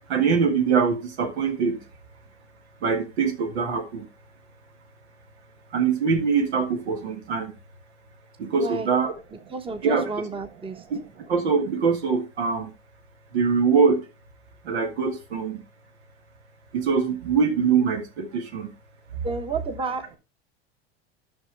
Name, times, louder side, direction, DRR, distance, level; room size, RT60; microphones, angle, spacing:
voice 1, 0.1-1.8 2.8-4.0 5.7-7.5 8.4-9.1 9.8-10.1 10.9-11.0 11.3-12.7 13.3-14.0 14.7-15.6 16.7-18.7, right 5 dB, 75° right, 2.0 m, -23 dB
voice 2, 8.5-8.9 9.5-10.9 19.2-20.2, right 4 dB, 15° right, 1.2 m, -31 dB
12.0 x 6.0 x 3.4 m
hypercardioid pair, 90°, 33 cm